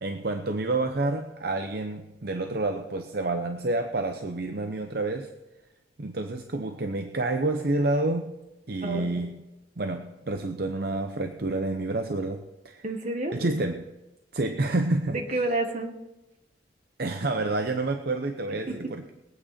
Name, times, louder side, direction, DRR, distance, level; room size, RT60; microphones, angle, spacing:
voice 1, 0.0-5.3 6.0-8.3 8.7-9.3 9.8-12.8 13.3-13.9 14.3-15.2 17.0-19.1, right 2 dB, 55° right, 6 dB, 0.7 m, -29 dB
voice 2, 8.8-9.3 12.8-13.4 15.1-15.9 18.5-18.9, right 2 dB, 40° right, 4 dB, 1.6 m, -30 dB
21.5 x 8.8 x 4.3 m, 1.0 s
head